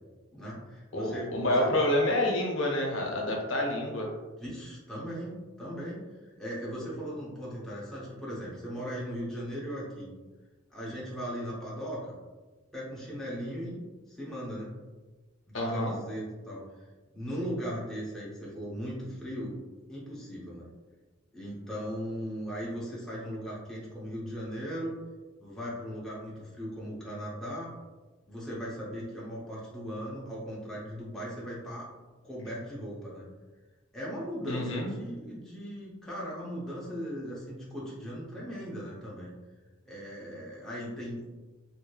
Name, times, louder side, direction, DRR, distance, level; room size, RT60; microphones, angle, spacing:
voice 1, 0.3-1.9 4.4-10.1 10.7-12.1 12.7-13.8 14.1-14.8 15.5-16.8 17.1-19.6 19.9-20.7 21.3-25.0 25.4-27.7 28.3-31.9 32.2-33.3 33.9-39.3 39.9-41.3, equal, ahead, -7 dB, 0.6 m, -38 dB
voice 2, 0.9-4.1 15.5-16.0 34.5-34.9, left 1 dB, 70° left, 0 dB, 0.6 m, -28 dB
3.0 x 2.7 x 2.2 m, 1.2 s
head